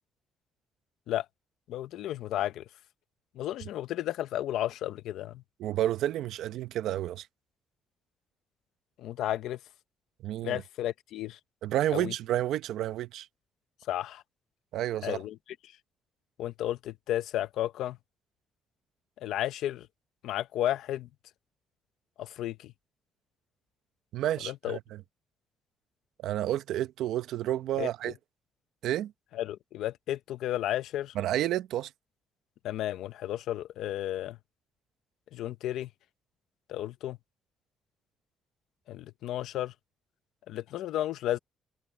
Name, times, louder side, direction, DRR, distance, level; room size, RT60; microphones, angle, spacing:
voice 1, 1.7-2.6 3.3-5.4 9.0-9.6 10.4-11.4 11.9-12.1 13.9-14.2 15.0-15.4 16.4-18.0 19.2-19.9 20.2-21.1 22.2-22.7 24.4-24.8 27.8-27.9 29.3-31.1 32.6-34.4 35.3-35.9 36.7-37.2 38.9-39.7 40.5-41.4, left 13 dB, 85° left, 1.0 m, -33 dB
voice 2, 5.6-7.3 10.2-10.6 11.6-13.3 14.7-15.2 24.1-24.8 26.2-28.1 28.8-29.1 31.1-31.9, right 13 dB, 85° right, 0.9 m, -30 dB
cardioid pair, 90°, 0 cm